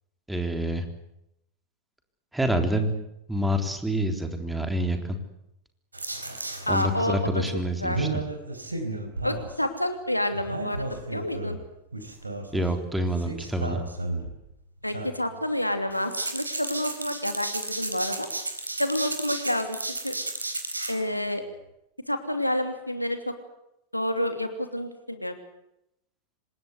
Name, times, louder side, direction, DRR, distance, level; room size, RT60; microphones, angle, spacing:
voice 1, 0.3-0.9 2.3-2.9 3.3-5.2 6.7-8.1 12.5-13.8, equal, 5° right, 6 dB, 3.6 m, -27 dB
sound 1, 5.9-6.8 7.9-9.6 10.3-11.6 11.9-12.6 13.2-14.3 14.8-15.5 15.9-20.9, right 2 dB, 80° right, 4.1 m, -33 dB
voice 2, 6.7-7.4 7.8-8.0 9.2-10.9 11.1-11.6 14.8-18.3 18.8-19.8 20.0-20.1 20.9-21.4 22.1-23.3 23.9-25.4, left 1 dB, 90° left, 7 dB, 2.9 m, -28 dB
26.0 x 20.0 x 8.3 m, 0.83 s
figure-of-eight pair, 90°, 0 cm